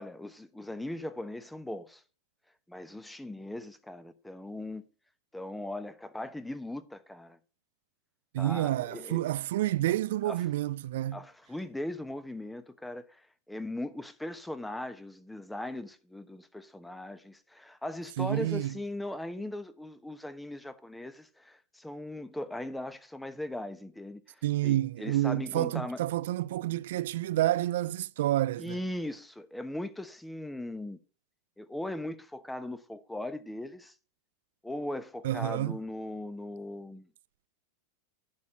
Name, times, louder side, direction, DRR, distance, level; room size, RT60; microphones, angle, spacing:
voice 1, 0.0-2.0 2.7-4.9 5.3-7.4 8.4-9.3 10.2-10.4 11.1-26.0 28.6-31.0 31.6-33.9 34.6-37.1, left 1 dB, 5° left, 1.0 m, -39 dB
voice 2, 8.3-11.2 18.2-18.8 24.4-28.8 35.2-35.8, right 14 dB, 75° right, 0.4 m, -29 dB
10.5 x 4.3 x 7.5 m
hypercardioid pair, 115°, 0 cm